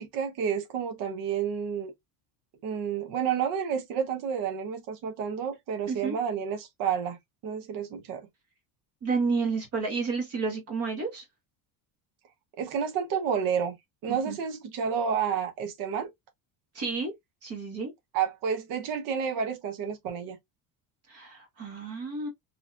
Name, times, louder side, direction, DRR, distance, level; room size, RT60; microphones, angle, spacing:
voice 1, 0.0-1.9 2.6-7.2 7.4-8.2 12.6-13.8 14.0-16.1 18.1-20.4, right 7 dB, 60° right, 1.1 m, -30 dB
voice 2, 5.9-6.2 9.0-11.2 14.1-14.4 16.7-17.1 17.4-17.9 21.1-22.3, right 4 dB, 40° right, 1.4 m, -31 dB
3.9 x 3.1 x 2.4 m
cardioid pair, 170°, 39 cm